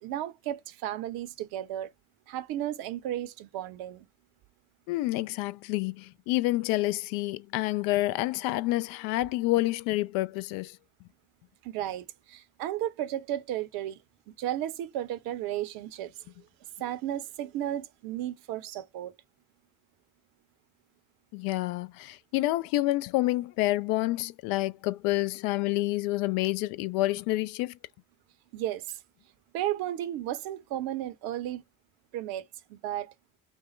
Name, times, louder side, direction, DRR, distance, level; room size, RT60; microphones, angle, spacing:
voice 1, 0.0-1.9 2.3-4.1 11.6-14.0 14.3-16.1 16.8-19.1 28.5-29.0 29.5-31.6 32.1-32.4 32.7-33.1, right 12 dB, 60° right, 1.0 m, -34 dB
voice 2, 4.9-10.8 21.3-27.7, left 18 dB, 60° left, 0.6 m, -28 dB
5.4 x 2.1 x 3.1 m
hypercardioid pair, 60°, 41 cm